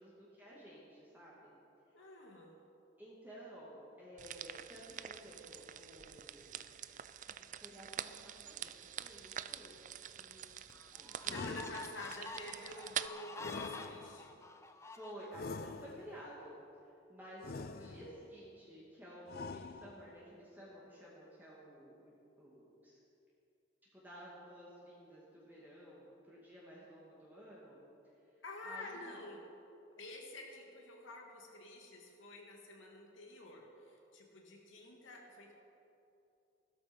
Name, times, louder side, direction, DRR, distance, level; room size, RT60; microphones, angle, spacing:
voice 1, 0.0-1.5 3.0-6.6 7.2-10.6 10.9-11.7 14.8-23.0 23.9-27.8 28.4-29.2, equal, 10° right, -7 dB, 2.4 m, -54 dB
voice 2, 1.9-2.6 11.2-14.3 17.8-18.0 28.4-29.5 30.0-35.5, left 2 dB, 85° left, 0 dB, 2.5 m, -49 dB
sound 1, 4.2-13.1, right 10 dB, 40° right, 0.4 m, -46 dB
sound 2, 10.0-10.1 10.7-15.7, left 3 dB, 15° left, 0.6 m, -49 dB
sound 3, 11.2-12.3 13.4-14.4 15.3-16.3 17.4-18.3 19.3-20.2, left 4 dB, 50° left, 0.4 m, -46 dB
16.0 x 12.5 x 5.4 m, 2.7 s
head